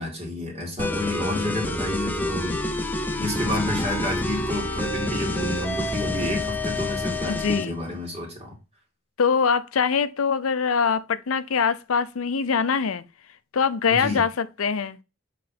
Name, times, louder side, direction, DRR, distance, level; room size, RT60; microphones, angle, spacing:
voice 1, 0.0-2.6 3.2-8.5 13.9-14.2, left 1 dB, 30° right, 2.6 m, -30 dB
sound 1, 0.8-7.7, left 1 dB, 10° left, 0.7 m, -28 dB
voice 2, 7.2-7.8 9.2-13.0 13.5-15.0, left 6 dB, 80° left, 0.6 m, -23 dB
7.6 x 3.4 x 4.2 m
head